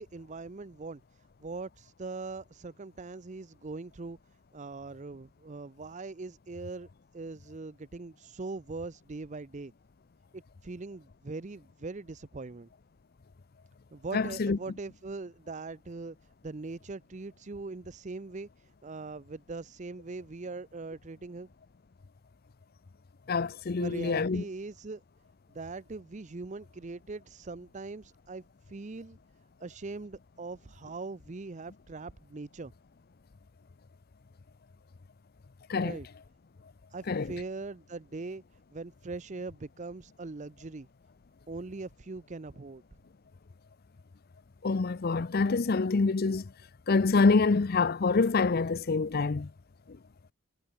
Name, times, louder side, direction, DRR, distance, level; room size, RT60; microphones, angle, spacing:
voice 1, 0.0-4.2 4.5-9.7 10.3-12.7 13.9-16.2 16.4-21.5 23.8-25.0 25.5-29.2 29.6-32.7 35.8-36.1 36.9-38.4 38.7-40.9 41.5-42.8, right 3 dB, 35° right, 0.5 m, -41 dB
voice 2, 14.1-14.6 23.3-24.4 35.7-36.0 37.1-37.3 44.6-46.5 46.9-49.5 49.9-50.0, left 4 dB, 45° left, 0.5 m, -26 dB
head